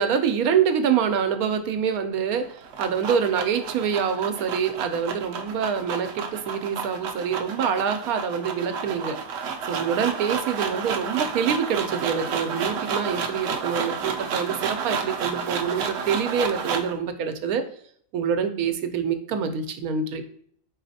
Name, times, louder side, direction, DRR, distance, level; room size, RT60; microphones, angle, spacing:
voice 1, 0.0-2.5 2.8-9.2 9.7-17.7 18.1-20.2, right 7 dB, 90° right, 8 dB, 1.1 m, -25 dB
sound 1, 2.4-17.0, right 5 dB, 65° right, 0.7 m, -31 dB
4.4 x 4.0 x 2.6 m, 0.62 s
omnidirectional pair, 1.5 m